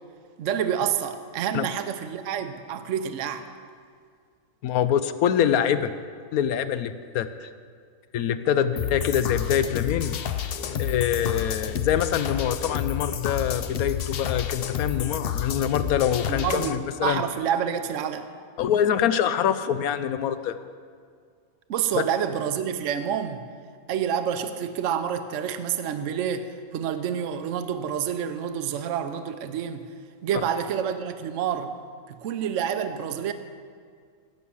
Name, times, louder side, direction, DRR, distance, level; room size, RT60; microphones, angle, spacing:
voice 1, 0.4-3.5 16.3-18.3 21.7-23.4 23.9-29.9 30.2-31.8 32.1-33.3, right 8 dB, 65° right, 9 dB, 1.0 m, -28 dB
voice 2, 4.6-5.9 6.3-7.5 8.1-10.2 10.8-17.2 18.6-20.6 21.9-22.0, left 9 dB, 80° left, 12 dB, 1.1 m, -25 dB
sound 1, 8.8-16.8, left 9 dB, 60° left, 0.6 m, -30 dB
16.5 x 6.3 x 7.1 m, 2.1 s
omnidirectional pair, 1.5 m